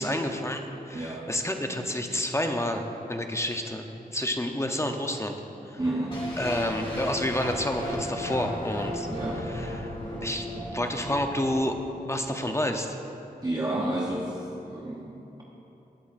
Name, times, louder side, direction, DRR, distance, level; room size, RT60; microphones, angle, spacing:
voice 1, 0.0-2.8 3.1-3.8 4.1-5.3 5.7-5.8 6.4-9.1 9.5-9.9 10.2-10.5 10.7-11.8 12.1-13.0, left 1 dB, 15° left, 4 dB, 0.7 m, -29 dB
voice 2, 0.9-1.3 5.8-6.4 9.1-9.4 13.4-15.4, right 1 dB, 25° right, -4 dB, 0.9 m, -31 dB
sound 1, 6.1-12.1, equal, 35° left, 2.4 m, -35 dB
17.0 x 8.7 x 2.6 m, 2.9 s
wide cardioid pair, 75°, 16 cm